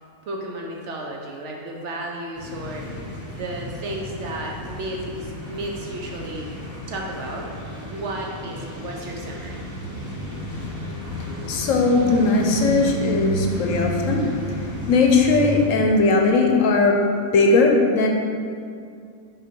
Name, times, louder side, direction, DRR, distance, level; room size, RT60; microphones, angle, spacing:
voice 1, 0.2-2.9 3.3-6.5 6.9-7.5 7.9-9.6, right 1 dB, 65° right, 0 dB, 0.8 m, -33 dB
sound 1, 2.4-15.7, equal, 10° left, 1.3 m, -32 dB
voice 2, 11.5-14.3 14.9-17.0 17.3-18.1, left 3 dB, 70° left, 1 dB, 1.0 m, -18 dB
5.7 x 3.2 x 5.3 m, 2.4 s
omnidirectional pair, 1.5 m